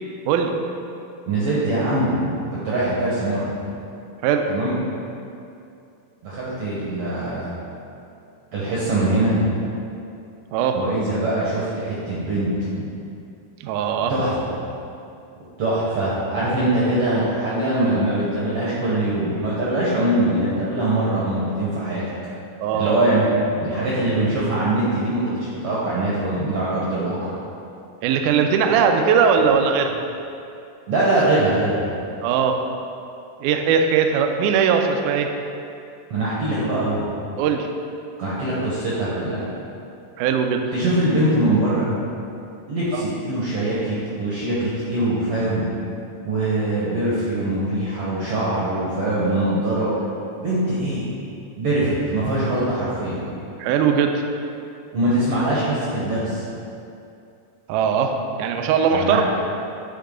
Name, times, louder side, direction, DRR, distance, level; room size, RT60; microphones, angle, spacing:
voice 1, 1.3-2.3 2.6-3.6 4.5-4.7 6.2-7.5 8.5-9.5 10.7-12.8 14.1-14.5 15.6-22.0 22.7-23.3 23.6-27.3 29.4-29.5 30.9-31.9 36.1-37.1 38.2-39.5 40.7-41.9 42.7-45.7 46.2-49.9 50.4-51.1 51.6-53.3 54.9-56.5 58.9-59.2, right 1 dB, 65° right, -8 dB, 1.5 m, -22 dB
voice 2, 13.6-14.1 22.6-23.0 28.0-29.9 32.2-32.6 33.4-35.3 37.4-37.7 40.2-40.6 42.9-43.1 53.6-54.2 57.7-58.1 58.4-59.2, right 6 dB, 85° right, 5 dB, 1.8 m, -19 dB
8.9 x 4.7 x 3.7 m, 2.6 s
omnidirectional pair, 4.1 m